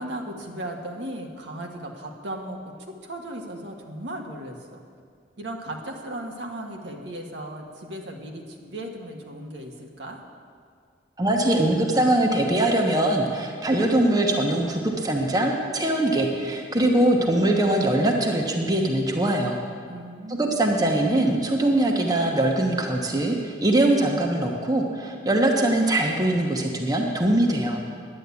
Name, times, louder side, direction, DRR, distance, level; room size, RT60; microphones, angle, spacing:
voice 1, 0.0-4.8 5.4-10.2 19.8-20.7, right 1 dB, 80° right, 1 dB, 1.5 m, -36 dB
voice 2, 11.2-19.6 20.3-27.8, right 1 dB, 20° right, 1 dB, 1.1 m, -22 dB
10.5 x 9.9 x 8.4 m, 2.1 s
head